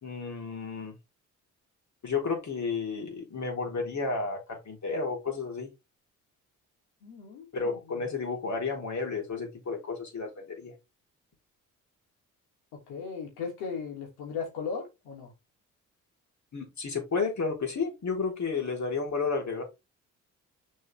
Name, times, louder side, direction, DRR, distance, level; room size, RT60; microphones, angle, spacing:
voice 1, 0.0-1.0 2.0-5.7 7.5-10.7 16.5-19.6, left 4 dB, 50° left, 4.0 m, -32 dB
voice 2, 7.0-8.2 12.7-15.3, left 5 dB, 80° left, 3.3 m, -38 dB
6.7 x 5.4 x 3.6 m
hypercardioid pair, 50°, 37 cm